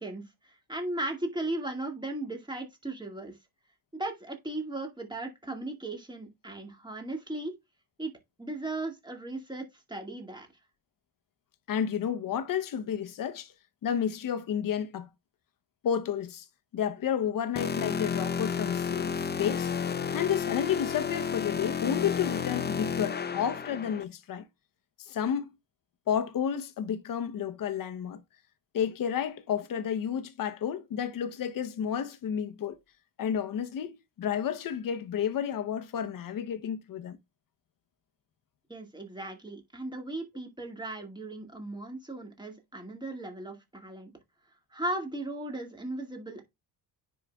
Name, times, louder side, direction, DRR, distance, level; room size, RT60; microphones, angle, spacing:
voice 1, 0.0-3.4 3.9-7.5 8.0-8.1 8.4-10.5 38.7-44.1 44.7-46.4, right 2 dB, 10° right, 2.1 m, -37 dB
voice 2, 11.7-13.5 13.8-15.1 15.8-16.5 16.7-19.1 19.4-19.7 20.1-24.5 25.0-25.5 26.1-28.2 28.7-32.8 33.2-37.2, left 8 dB, 60° left, 0.9 m, -31 dB
sound 1, 17.6-24.0, left 6 dB, 25° left, 0.7 m, -31 dB
9.9 x 4.9 x 2.3 m
cardioid pair, 110°, 38 cm